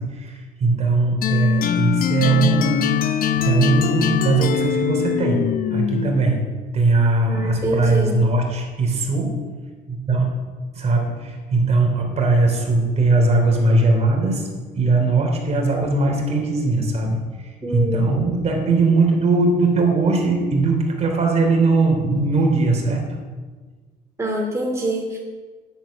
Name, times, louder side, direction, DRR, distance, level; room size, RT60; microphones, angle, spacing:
voice 1, 0.0-5.5 5.7-6.4 6.7-9.4 9.9-10.3 10.7-14.5 14.7-23.0, right 3 dB, 40° right, 1 dB, 3.3 m, -20 dB
sound 1, 1.2-6.3, left 9 dB, 55° left, 0.8 m, -22 dB
voice 2, 7.3-8.2 17.6-18.1 24.2-25.2, right 1 dB, 15° right, -2 dB, 2.6 m, -25 dB
10.5 x 7.7 x 9.2 m, 1.4 s
cardioid pair, 110°, 17 cm